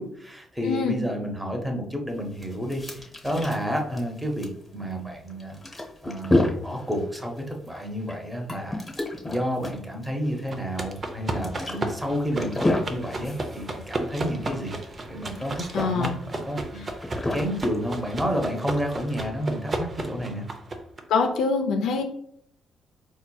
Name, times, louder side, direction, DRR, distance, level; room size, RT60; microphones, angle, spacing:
voice 1, 0.0-5.6 6.0-8.9 9.2-14.7 15.1-20.5, equal, 5° right, 2 dB, 0.8 m, -30 dB
voice 2, 0.6-1.0 15.7-16.1 21.1-22.0, left 4 dB, 85° left, 3 dB, 0.4 m, -24 dB
sound 1, 2.1-18.6, left 1 dB, 20° left, 0.9 m, -32 dB
sound 2, 10.5-21.0, right 2 dB, 35° right, 0.5 m, -34 dB
4.2 x 2.9 x 2.3 m, 0.68 s
cardioid pair, 90°, 0 cm